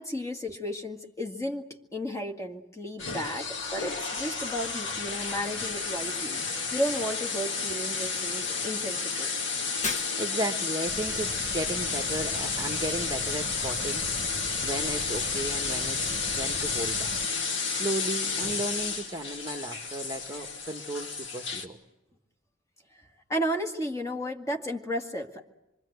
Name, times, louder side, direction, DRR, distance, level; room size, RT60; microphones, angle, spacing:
voice 1, 0.0-6.4 6.7-9.3 22.9-25.5, equal, 15° left, 3 dB, 2.0 m, -33 dB
sound 1, 3.0-21.6, left 5 dB, 60° left, 2.6 m, -31 dB
Shatter, 9.8-10.6, left 4 dB, 35° left, 1.3 m, -35 dB
voice 2, 9.8-16.0 16.3-17.1 17.7-21.8, right 1 dB, 20° right, 5 dB, 1.1 m, -35 dB
sound 2, 10.9-17.3, right 2 dB, 40° right, 1.0 m, -41 dB
27.0 x 23.5 x 8.0 m, 1.0 s
head